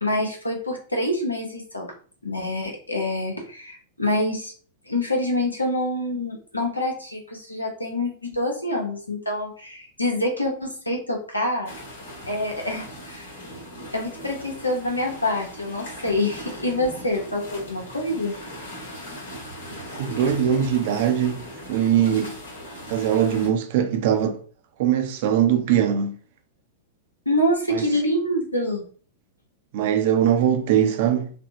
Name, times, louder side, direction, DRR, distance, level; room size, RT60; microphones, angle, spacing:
voice 1, 0.0-1.9 2.2-4.5 4.9-11.7 12.3-13.3 13.9-18.3 27.3-28.8, left 1 dB, 90° left, 0.7 m, -26 dB
sound 1, 11.7-23.5, equal, 65° left, 1.1 m, -39 dB
voice 2, 20.0-22.4 22.9-24.4 24.8-26.2 27.7-27.9 29.7-31.3, right 9 dB, 55° right, 0.4 m, -21 dB
3.3 x 2.0 x 2.7 m
figure-of-eight pair, 95°, 0 cm